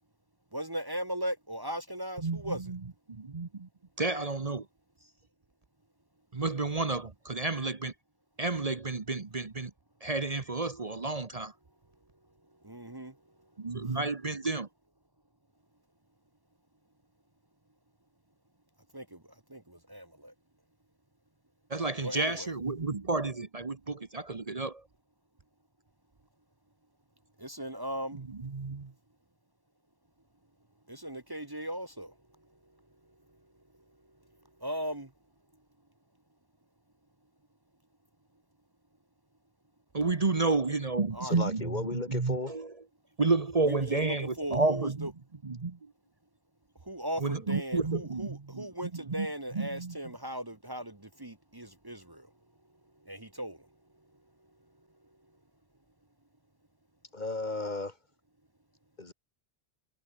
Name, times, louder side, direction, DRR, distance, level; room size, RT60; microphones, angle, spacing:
voice 1, 0.5-2.6 12.6-13.1 18.9-19.2 19.5-20.3 22.0-22.5 27.4-28.2 30.9-32.1 34.6-35.1 41.1-41.4 43.7-45.1 46.9-52.3 53.1-53.6, equal, 20° right, 1.4 m, -38 dB
voice 2, 2.2-2.8 3.1-3.7 4.0-4.7 6.3-7.9 8.4-9.7 10.0-11.5 13.6-14.7 21.7-24.8 28.1-28.9 39.9-42.7 43.2-45.1 45.4-45.9 47.2-49.3 49.5-50.0, right 3 dB, 35° right, 1.2 m, -31 dB
voice 3, 41.2-42.5 57.1-58.0 59.0-59.1, left 2 dB, 45° left, 2.2 m, -34 dB
omnidirectional pair, 1.1 m